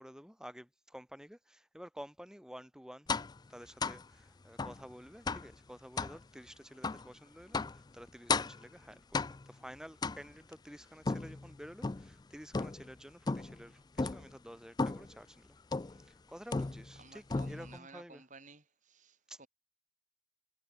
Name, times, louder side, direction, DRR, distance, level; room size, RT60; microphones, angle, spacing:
voice 1, 0.0-3.1 3.5-15.6 15.9-18.2 19.3-19.5, equal, 5° right, 3.2 m, -51 dB
sound 1, 3.1-3.4 3.8-4.1 4.6-4.8 5.3-5.5 6.0-6.2 6.8-7.1 7.5-7.8 8.3-8.7 9.1-9.6 10.0-10.5 11.1-12.1 12.5-12.9 13.3-13.6 14.0-14.3 14.8-15.1 15.7-16.0 16.5-17.0 17.3-17.8, left 4 dB, 20° left, 0.3 m, -35 dB
voice 2, 17.0-19.5, right 3 dB, 35° right, 4.0 m, -55 dB
head